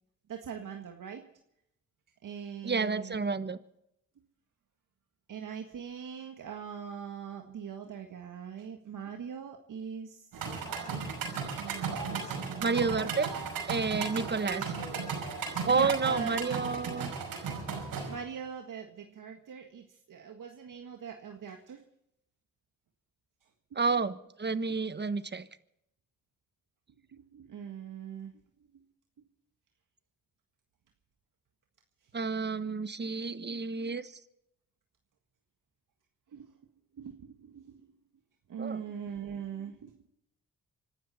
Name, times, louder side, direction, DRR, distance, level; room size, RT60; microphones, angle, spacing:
voice 1, 0.3-1.2 2.2-3.2 5.3-10.6 11.6-13.0 15.7-16.4 18.1-21.8 23.7-23.8 27.1-28.3 28.7-28.8 36.3-36.5 36.9-37.8 38.5-40.1, right 7 dB, 65° right, 4 dB, 1.7 m, -42 dB
voice 2, 2.6-3.6 12.6-13.3 13.7-14.6 15.7-17.1 23.7-25.5 32.1-34.1 38.6-38.8, right 4 dB, 30° right, 13 dB, 1.4 m, -30 dB
sound 1, 10.3-18.1, right 5 dB, 80° right, 5.6 m, -36 dB
26.0 x 12.5 x 4.3 m, 0.78 s
supercardioid pair, 55°, 34 cm